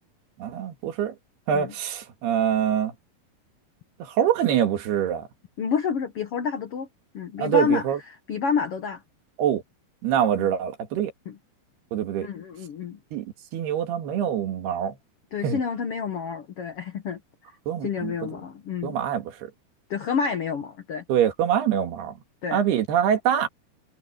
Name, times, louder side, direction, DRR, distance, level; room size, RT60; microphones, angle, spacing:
voice 1, 0.4-1.2 1.5-2.9 4.0-5.2 7.4-8.0 9.4-9.6 10.0-11.1 11.9-12.3 13.1-13.3 13.5-15.0 15.4-15.6 17.7-18.1 18.8-19.5 21.1-22.1 22.5-23.5, right 9 dB, 80° right, 4.0 m, -24 dB
voice 2, 5.6-6.9 7.1-9.0 10.3-10.5 11.3-11.4 12.2-13.0 15.3-17.2 17.8-19.0 19.9-21.0 22.4-22.6, left 6 dB, 85° left, 1.3 m, -29 dB
omnidirectional pair, 4.6 m